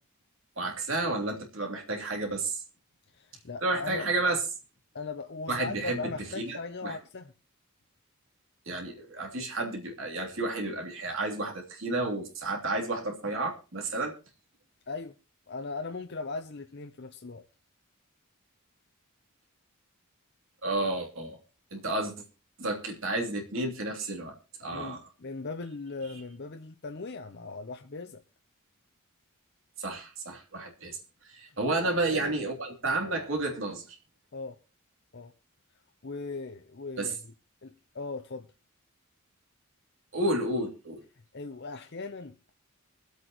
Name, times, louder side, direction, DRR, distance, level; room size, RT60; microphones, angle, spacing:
voice 1, 0.6-2.6 3.6-4.4 5.5-7.0 8.7-14.1 20.6-21.4 21.7-22.1 22.6-24.3 24.6-25.0 29.8-31.0 31.2-34.0 37.0-37.1 40.1-41.0, right 2 dB, 60° right, 3.1 m, -31 dB
voice 2, 3.1-4.1 4.9-7.3 14.9-15.1 15.5-17.4 24.7-28.2 31.6-32.4 34.3-34.6 35.1-35.3 36.0-37.3 37.6-38.5 41.3-42.5, left 3 dB, 50° left, 0.7 m, -39 dB
24.5 x 8.3 x 3.0 m
head